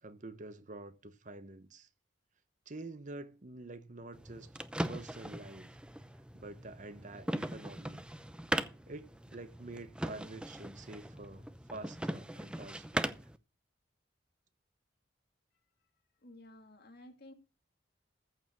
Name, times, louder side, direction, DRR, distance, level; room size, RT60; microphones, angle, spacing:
voice 1, 0.0-1.9 2.7-4.5 4.9-5.8 6.3-8.0 8.9-11.4 11.7-13.1, right 2 dB, 45° right, 1.0 m, -47 dB
sound 1, 4.1-13.4, right 1 dB, 5° right, 0.6 m, -40 dB
voice 2, 16.2-17.3, left 1 dB, 60° left, 2.0 m, -54 dB
14.5 x 5.0 x 8.0 m
head